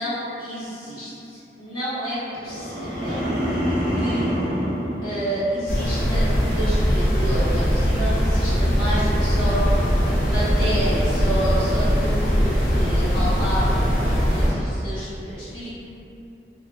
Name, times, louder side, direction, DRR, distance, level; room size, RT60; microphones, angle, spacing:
voice 1, 0.0-3.2 4.0-4.3 5.0-9.8 10.0-15.7, right 1 dB, 25° left, -16 dB, 1.3 m, -29 dB
sound 1, 2.4-5.9 6.2-6.6, equal, 55° right, 1.2 m, -26 dB
sound 2, 5.7-14.5, equal, 50° left, 0.6 m, -21 dB
2.6 x 2.5 x 2.3 m, 2.8 s
head